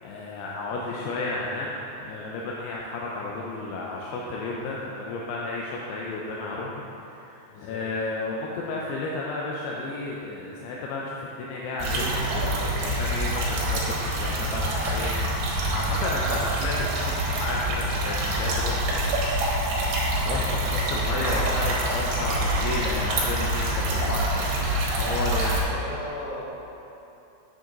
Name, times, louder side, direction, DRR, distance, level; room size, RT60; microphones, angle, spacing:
voice 1, 0.0-19.2 20.2-25.8, left 2 dB, 80° left, -3 dB, 2.5 m, -32 dB
voice 2, 7.5-7.8 16.1-16.2 25.6-26.5, left 1 dB, 60° left, -9 dB, 3.6 m, -37 dB
sound 1, 11.8-25.6, right 1 dB, 80° right, 3.6 m, -26 dB
7.7 x 7.6 x 3.9 m, 2.8 s
omnidirectional pair, 5.1 m